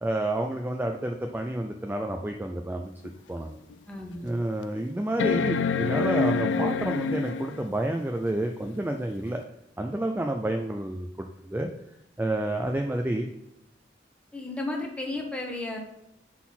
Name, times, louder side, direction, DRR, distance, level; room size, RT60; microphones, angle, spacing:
voice 1, 0.0-3.6 4.2-9.4 9.8-11.7 12.2-13.3, right 1 dB, 10° right, 3 dB, 0.4 m, -29 dB
sound 1, 3.0-3.1 3.7-3.8 5.2-7.7 9.4-9.5, left 4 dB, 85° left, 0.4 m, -27 dB
voice 2, 3.9-4.3 14.3-15.8, left 2 dB, 5° left, 1 dB, 1.1 m, -33 dB
5.8 x 4.1 x 5.9 m, 0.83 s
head